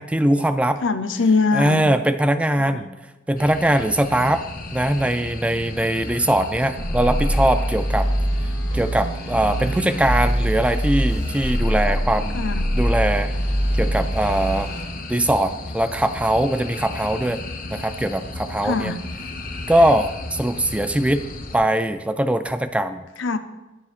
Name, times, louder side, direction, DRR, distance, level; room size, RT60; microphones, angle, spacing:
voice 1, 0.0-0.8 1.5-2.9 3.3-4.4 4.7-8.1 8.7-12.4 12.7-13.3 13.7-14.7 15.1-17.4 17.7-18.9 19.7-21.2 21.5-23.0, right 1 dB, 5° right, 9 dB, 0.3 m, -21 dB
voice 2, 0.8-1.8 2.6-2.8 12.3-12.6 18.6-19.0 23.2-23.4, left 4 dB, 75° left, 10 dB, 0.7 m, -22 dB
sound 1, 3.4-21.6, left 2 dB, 45° left, 1.0 m, -35 dB
sound 2, 6.8-14.8, equal, 20° left, 2.5 m, -23 dB
21.0 x 7.1 x 2.5 m, 1.1 s
head